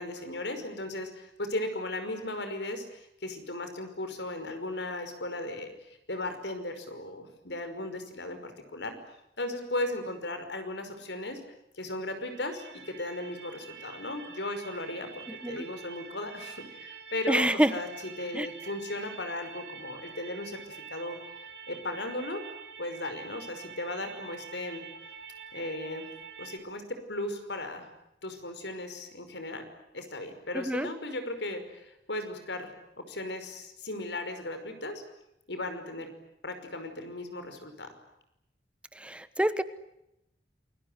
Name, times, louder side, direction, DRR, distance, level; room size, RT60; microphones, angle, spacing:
voice 1, 0.0-9.0 9.4-11.4 11.7-17.9 18.2-21.2 21.7-22.4 22.8-24.9 25.5-26.1 26.4-27.9 28.2-29.7 29.9-35.0 35.5-36.1 36.4-37.9, left 1 dB, 85° left, 8 dB, 5.5 m, -36 dB
sound 1, 12.3-26.6, right 6 dB, 90° right, 4.1 m, -46 dB
voice 2, 17.3-17.7 18.3-18.5 30.5-30.9 38.9-39.6, right 1 dB, 5° right, 13 dB, 1.1 m, -27 dB
28.5 x 21.5 x 9.5 m, 0.86 s
head